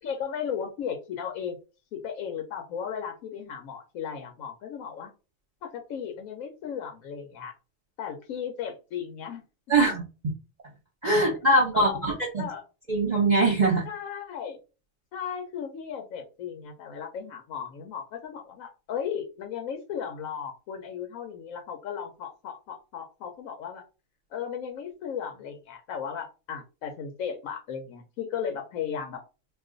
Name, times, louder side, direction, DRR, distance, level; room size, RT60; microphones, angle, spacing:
voice 1, 0.0-1.6 1.9-5.1 5.6-7.5 8.0-9.4 11.2-11.3 11.7-12.0 12.4-12.6 13.9-14.6 15.1-23.8 24.3-29.2, left 7 dB, 80° left, 3 dB, 1.0 m, -35 dB
voice 2, 9.7-10.0 11.0-12.5 12.9-13.9, right 2 dB, 40° right, -3 dB, 0.8 m, -22 dB
2.4 x 2.4 x 3.7 m, 0.31 s
omnidirectional pair, 1.4 m